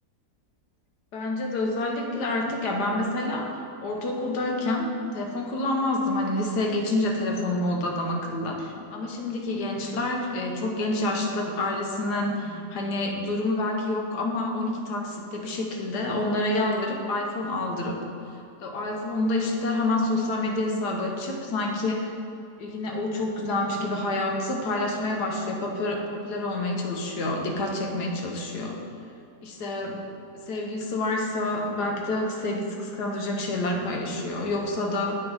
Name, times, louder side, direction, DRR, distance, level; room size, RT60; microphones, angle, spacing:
voice 1, 1.1-3.5 3.8-4.9 5.1-18.0 18.6-22.1 22.6-28.8 29.4-30.0 30.5-35.2, left 2 dB, 85° left, 1 dB, 1.5 m, -28 dB
8.3 x 5.6 x 3.4 m, 2.5 s
omnidirectional pair, 1.7 m